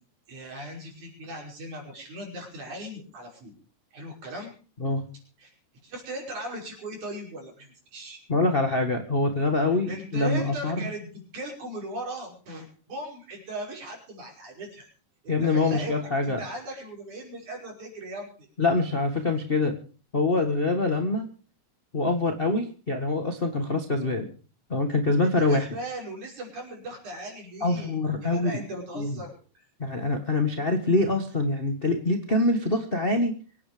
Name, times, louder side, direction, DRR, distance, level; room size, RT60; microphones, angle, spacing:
voice 1, 0.3-3.5 3.9-4.5 5.4-5.5 5.8-8.2 9.9-14.9 15.2-15.9 16.2-18.5 25.4-28.0 28.2-29.7, right 1 dB, 70° right, 0 dB, 6.9 m, -38 dB
voice 2, 8.3-10.8 15.3-16.4 18.6-19.7 20.1-21.2 21.9-24.3 24.7-25.7 27.6-28.5 28.9-29.2 29.8-33.3, left 2 dB, 30° left, 4 dB, 1.1 m, -25 dB
24.5 x 9.7 x 5.1 m, 0.39 s
omnidirectional pair, 3.5 m